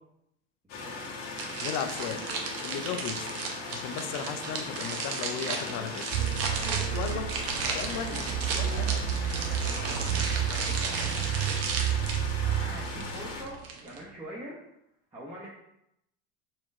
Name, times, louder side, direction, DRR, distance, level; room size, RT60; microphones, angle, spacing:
sound 1, 0.7-13.4, left 3 dB, 80° left, 1.6 m, -39 dB
voice 1, 0.7-1.1 5.4-6.0 6.5-7.0 7.7-8.2 8.6-9.0 9.3-11.6 11.8-14.6 15.1-15.5, right 1 dB, 15° right, -7 dB, 1.2 m, -45 dB
sound 2, 1.4-14.0, right 4 dB, 45° right, 0.9 m, -35 dB
voice 2, 1.6-2.2 2.6-3.3 3.7-6.1 6.9-7.3 7.7-8.3 8.5-9.0, left 8 dB, 55° left, 8 dB, 0.6 m, -35 dB
sound 3, 6.1-13.6, right 10 dB, 70° right, 0.5 m, -31 dB
4.5 x 2.9 x 3.7 m, 0.81 s
supercardioid pair, 95°, 33 cm